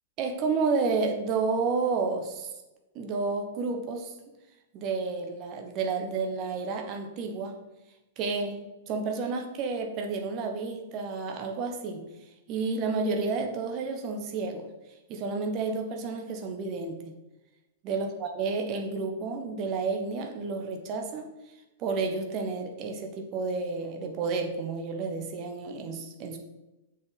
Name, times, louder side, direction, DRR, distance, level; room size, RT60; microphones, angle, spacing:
voice 1, 0.2-2.5 2.9-4.1 4.7-7.6 8.2-8.6 8.9-12.0 12.5-14.6 15.1-17.1 17.8-21.3 21.8-26.4, right 4 dB, 35° right, 4 dB, 1.4 m, -31 dB
7.5 x 6.2 x 5.5 m, 1.0 s
figure-of-eight pair, 105°, 0 cm